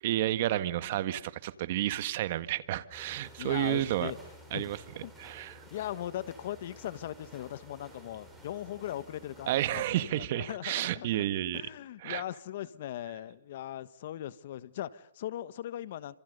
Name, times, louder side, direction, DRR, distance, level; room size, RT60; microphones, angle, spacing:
voice 1, 0.0-4.1 4.5-4.8 5.2-5.5 9.5-11.6 12.0-12.2, right 14 dB, 50° right, 13 dB, 1.7 m, -31 dB
sound 1, 2.9-9.6, right 1 dB, 5° right, 7.3 m, -53 dB
voice 2, 3.4-4.2 4.5-4.7 5.0-5.3 5.7-11.2 11.5-16.1, left 12 dB, 55° left, 16 dB, 1.4 m, -39 dB
28.5 x 27.0 x 6.8 m, 0.76 s
hypercardioid pair, 150°, 0 cm